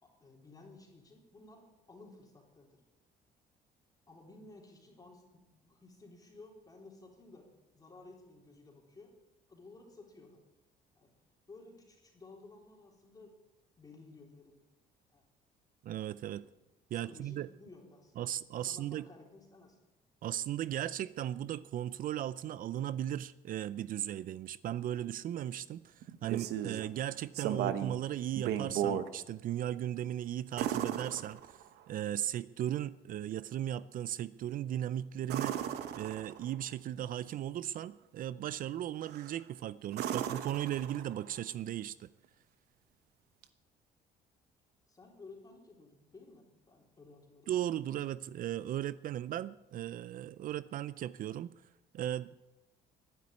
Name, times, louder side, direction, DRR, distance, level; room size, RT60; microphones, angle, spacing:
voice 1, 0.0-2.8 4.1-7.5 7.7-9.2 9.5-10.4 10.9-11.1 11.5-13.4 13.8-14.6 15.1-15.2 16.4-16.5 16.9-19.8 44.9-47.5, left 3 dB, 20° left, -1 dB, 3.7 m, -55 dB
voice 2, 15.8-16.4 16.9-17.5 18.2-19.0 20.2-31.6 31.9-35.6 35.9-42.1 47.5-51.5 51.9-52.3, right 11 dB, 55° right, 17 dB, 0.5 m, -37 dB
sound 1, 26.0-26.9 27.3-28.0 28.3-29.1 30.6-31.8 35.2-36.6 39.0-39.4 39.9-41.3 43.4-43.5, right 9 dB, 75° right, 1.1 m, -36 dB
11.5 x 10.5 x 9.8 m, 1.0 s
cardioid pair, 110°, 17 cm